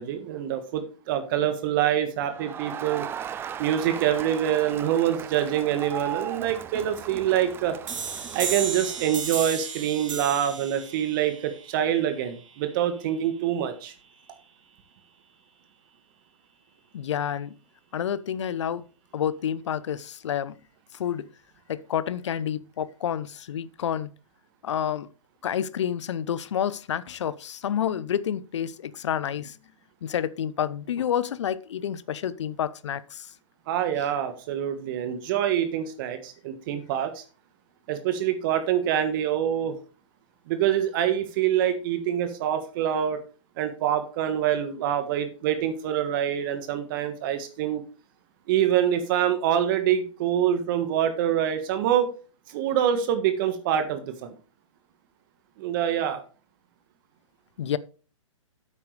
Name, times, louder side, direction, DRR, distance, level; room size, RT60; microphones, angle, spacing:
voice 1, 0.0-3.0 3.6-7.8 8.3-13.9 33.7-37.2 37.9-39.7 40.5-43.2 43.6-47.8 48.5-52.1 52.5-54.3 55.6-56.2, right 10 dB, 40° right, 1.4 m, -25 dB
Crowd, 2.2-9.3, right 9 dB, 15° right, 0.5 m, -37 dB
sound 1, 7.9-13.3, right 6 dB, 70° right, 2.5 m, -35 dB
voice 2, 16.9-17.5 17.9-18.9 19.1-20.5 20.9-21.3 21.7-24.1 24.6-25.1 25.4-29.6 30.0-33.3 57.6-57.8, left 9 dB, 60° left, 0.7 m, -29 dB
10.5 x 8.4 x 3.3 m
hypercardioid pair, 130°, 17 cm